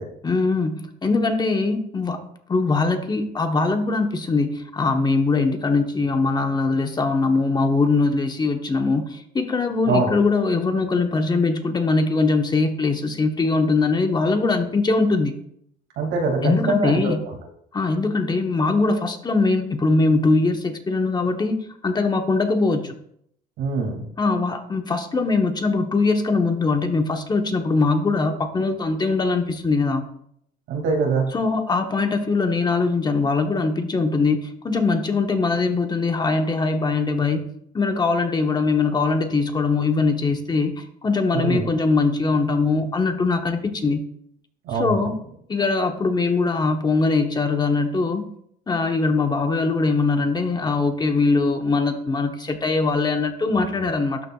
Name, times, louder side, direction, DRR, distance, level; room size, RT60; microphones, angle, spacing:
voice 1, 0.2-2.2 2.5-15.4 16.4-17.2 17.7-22.9 24.2-30.0 31.3-37.5 37.7-44.0 44.7-45.2 45.5-48.3 48.7-54.2, left 3 dB, 25° left, 5 dB, 1.0 m, -21 dB
voice 2, 16.0-17.0 17.3-17.4 23.6-24.0 30.7-31.3 41.3-41.7 44.6-45.1, right 3 dB, 85° right, 1 dB, 2.4 m, -23 dB
12.0 x 6.7 x 2.4 m, 0.69 s
cardioid pair, 110°, 17 cm